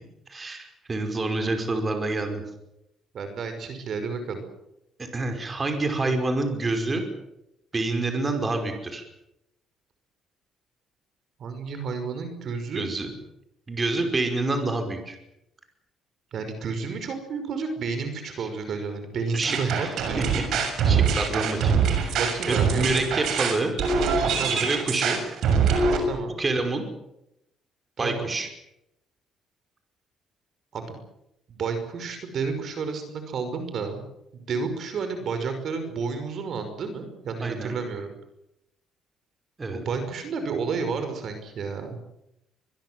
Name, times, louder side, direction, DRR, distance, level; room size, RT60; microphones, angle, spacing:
voice 1, 0.3-2.4 5.0-7.0 7.7-9.0 12.7-13.1 13.7-15.2 18.4-18.5 19.3-20.4 20.8-22.2 22.5-23.7 24.5-25.2 26.4-26.8 28.0-28.5 37.4-37.8 39.6-39.8, right 2 dB, 25° right, 5 dB, 5.3 m, -27 dB
voice 2, 3.1-4.4 11.4-12.9 16.3-20.5 22.2-23.0 24.4-24.7 26.1-26.3 28.0-28.3 30.7-31.0 31.5-34.0 34.3-38.1 39.7-42.0, right 5 dB, 55° right, 8 dB, 5.5 m, -31 dB
sound 1, 19.4-26.0, right 5 dB, 70° right, 6.8 m, -23 dB
25.0 x 21.5 x 7.7 m, 0.85 s
cardioid pair, 115°, 0 cm